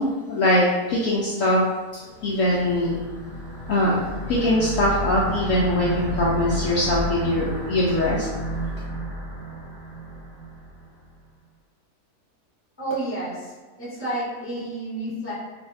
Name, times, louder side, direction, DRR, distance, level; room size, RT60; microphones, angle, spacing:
voice 1, 0.0-1.6 1.9-3.0 3.7-8.4, left 1 dB, 65° left, -5 dB, 0.8 m, -22 dB
sound 1, 2.2-10.8, right 1 dB, 55° right, 1.7 m, -31 dB
voice 2, 12.8-13.5 13.8-15.3, right 1 dB, 10° left, -8 dB, 0.9 m, -30 dB
3.3 x 2.6 x 3.3 m, 1.3 s
omnidirectional pair, 1.6 m